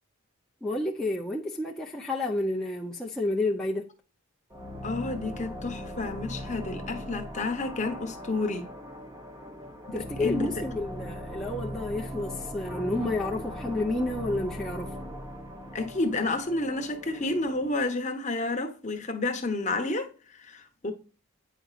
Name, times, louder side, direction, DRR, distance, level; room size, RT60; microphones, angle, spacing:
voice 1, 0.6-3.9 9.9-15.0, left 2 dB, 5° left, 0.5 m, -30 dB
sound 1, 4.5-17.8, equal, 15° right, 0.9 m, -39 dB
voice 2, 4.8-8.7 9.9-10.5 15.7-20.9, left 2 dB, 35° left, 1.0 m, -30 dB
8.9 x 5.0 x 2.4 m
head